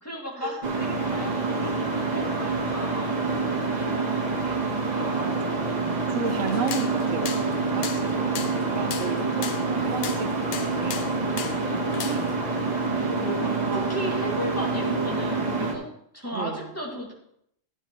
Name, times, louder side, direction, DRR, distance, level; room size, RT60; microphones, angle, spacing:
voice 1, 0.0-5.5 6.2-6.5 8.7-9.5 11.5-12.1 12.8-15.9 16.1-17.1, equal, 10° left, -3 dB, 2.1 m, -36 dB
sound 1, 0.6-15.7, right 3 dB, 35° right, 1.4 m, -27 dB
voice 2, 5.1-11.0 12.0-12.3 13.4-13.8 16.3-16.7, right 5 dB, 80° right, 7 dB, 1.2 m, -34 dB
sound 2, 6.3-12.4, left 8 dB, 60° left, 0.5 m, -37 dB
12.0 x 9.1 x 3.1 m, 0.73 s
omnidirectional pair, 1.3 m